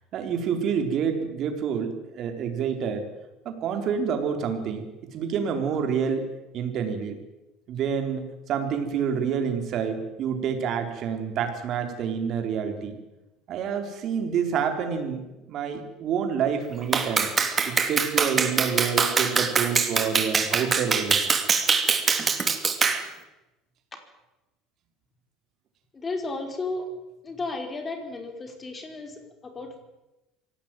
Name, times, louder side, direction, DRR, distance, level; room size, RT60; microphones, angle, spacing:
voice 1, 0.1-3.1 3.4-6.3 6.5-7.2 7.7-13.0 13.5-17.3 17.7-21.2, right 7 dB, 45° right, 6 dB, 4.5 m, -28 dB
Clapping, 16.9-23.0, right 5 dB, 25° right, 2.6 m, -23 dB
voice 2, 25.9-26.8 27.2-29.8, left 3 dB, 20° left, 5 dB, 4.9 m, -34 dB
25.0 x 17.5 x 9.4 m, 1.0 s
cardioid pair, 140°, 0 cm